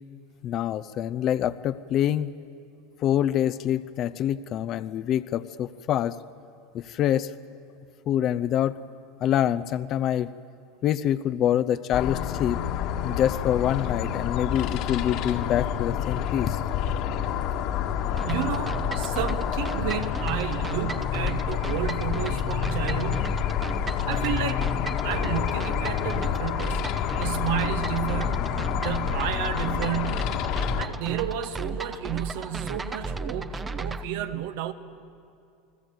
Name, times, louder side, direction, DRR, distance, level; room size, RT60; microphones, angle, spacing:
voice 1, 0.4-2.3 3.0-6.2 6.7-7.3 8.1-8.8 9.2-10.3 10.8-12.6 13.0-16.6, left 11 dB, 40° left, 13 dB, 0.6 m, -25 dB
sound 1, 11.9-30.9, left 9 dB, 60° left, 1.9 m, -28 dB
sound 2, 18.2-34.0, right 3 dB, 15° right, 0.9 m, -35 dB
voice 2, 18.2-23.3 24.1-24.7 25.0-26.9 27.2-28.5 28.8-30.3 30.8-34.7, right 11 dB, 70° right, 9 dB, 1.5 m, -31 dB
29.5 x 20.0 x 7.9 m, 2.5 s
supercardioid pair, 135°, 0 cm